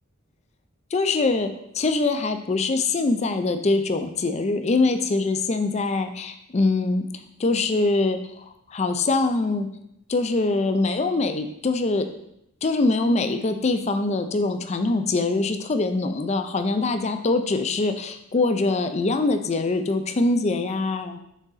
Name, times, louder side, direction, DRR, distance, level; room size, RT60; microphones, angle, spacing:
voice 1, 0.9-8.4 8.7-9.7 10.1-12.1 12.6-21.2, left 3 dB, 30° left, 8 dB, 0.4 m, -23 dB
6.1 x 3.9 x 4.0 m, 0.78 s
head